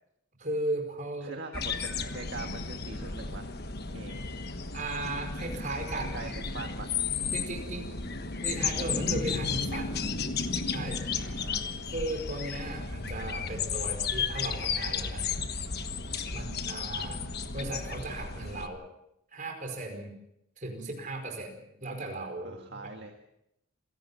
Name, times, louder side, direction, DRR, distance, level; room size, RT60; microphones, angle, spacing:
voice 1, 0.4-1.3 4.7-6.6 7.3-8.0 8.4-10.1 10.7-11.0 11.9-15.2 16.3-17.2 17.5-18.8 19.3-20.1 20.6-21.5 21.8-22.8, right 2 dB, 40° right, 3 dB, 5.1 m, -36 dB
voice 2, 1.2-3.5 3.9-4.2 6.1-6.9 11.2-11.7 16.3-16.5 22.4-23.1, right 3 dB, 55° right, 3 dB, 1.7 m, -42 dB
sound 1, 1.5-18.7, left 5 dB, 50° left, 1.3 m, -33 dB
28.0 x 17.0 x 5.7 m, 0.80 s
head